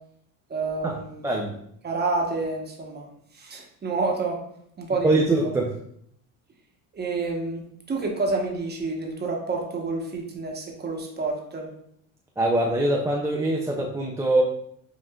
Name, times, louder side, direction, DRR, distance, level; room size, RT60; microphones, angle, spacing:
voice 1, 0.5-1.3 1.8-3.1 3.3-4.4 4.8-5.2 6.9-11.7, right 3 dB, 25° right, 0 dB, 1.0 m, -29 dB
voice 2, 5.0-5.6 12.4-14.4, right 2 dB, 10° right, -2 dB, 0.3 m, -23 dB
5.5 x 2.4 x 2.3 m, 0.69 s
supercardioid pair, 90°, 39 cm